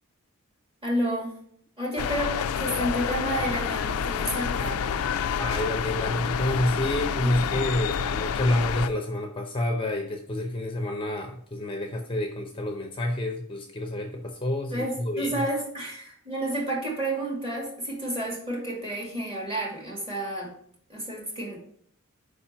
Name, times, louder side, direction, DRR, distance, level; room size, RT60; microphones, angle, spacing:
voice 1, 0.8-1.3 1.8-4.8 7.2-7.5 14.7-20.5 20.9-21.6, right 1 dB, 25° right, -3 dB, 2.2 m, -30 dB
sound 1, 2.0-8.9, left 7 dB, 70° left, 0.4 m, -28 dB
voice 2, 5.4-15.4, left 1 dB, 25° left, 3 dB, 0.6 m, -28 dB
5.1 x 4.3 x 5.6 m, 0.62 s
head